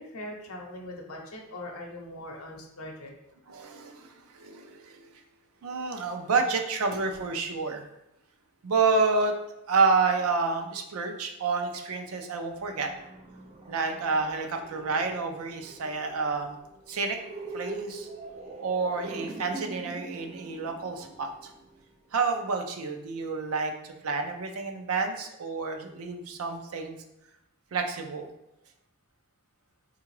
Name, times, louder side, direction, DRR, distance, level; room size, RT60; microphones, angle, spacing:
voice 1, 0.0-3.1, left 1 dB, 80° left, 0 dB, 0.7 m, -41 dB
voice 2, 3.5-5.1 5.6-7.9 8.6-9.3 9.7-12.9 13.7-16.6 16.9-17.2 17.5-18.1 18.6-21.3 22.1-27.0 27.7-28.3, right 4 dB, 80° right, 5 dB, 0.5 m, -29 dB
sound 1, 12.5-22.2, right 2 dB, 30° right, 0.5 m, -44 dB
3.6 x 2.3 x 3.1 m, 0.87 s
head